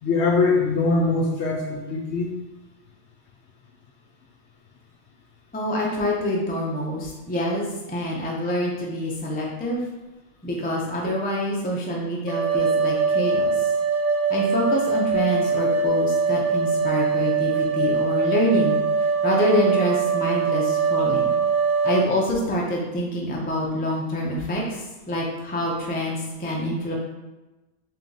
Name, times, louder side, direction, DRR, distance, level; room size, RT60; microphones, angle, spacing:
voice 1, 0.0-2.3, left 3 dB, 65° left, 0 dB, 0.7 m, -22 dB
voice 2, 5.5-9.8 10.4-13.5 14.3-18.8 19.2-21.4 21.8-26.9, equal, 15° left, -3 dB, 0.3 m, -26 dB
sound 1, 12.3-22.0, right 5 dB, 85° right, 1.2 m, -22 dB
3.5 x 2.8 x 3.9 m, 1.1 s
omnidirectional pair, 1.4 m